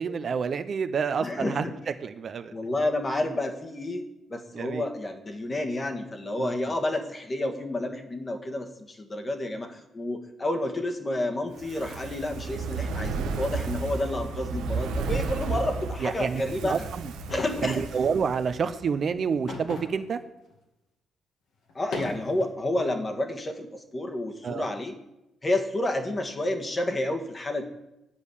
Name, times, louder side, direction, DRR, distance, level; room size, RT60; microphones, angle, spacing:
voice 1, 0.0-1.6 2.0-2.5 4.5-4.8 6.4-6.5 16.0-17.1 17.6-20.2 24.4-24.7, right 6 dB, 50° right, 10 dB, 0.7 m, -28 dB
voice 2, 1.2-1.7 2.5-4.0 4.3-16.8 17.3-17.8 21.7-24.9 25.4-27.6, left 1 dB, 25° left, 5 dB, 1.6 m, -30 dB
Fire, 11.5-18.9 19.2-19.3, right 4 dB, 90° right, 1.1 m, -33 dB
sound 1, 17.3-17.8 19.5-20.1 20.5-20.6 21.7-22.5, left 3 dB, 75° left, 2.3 m, -37 dB
10.0 x 5.3 x 8.4 m, 0.92 s
cardioid pair, 90°, 0 cm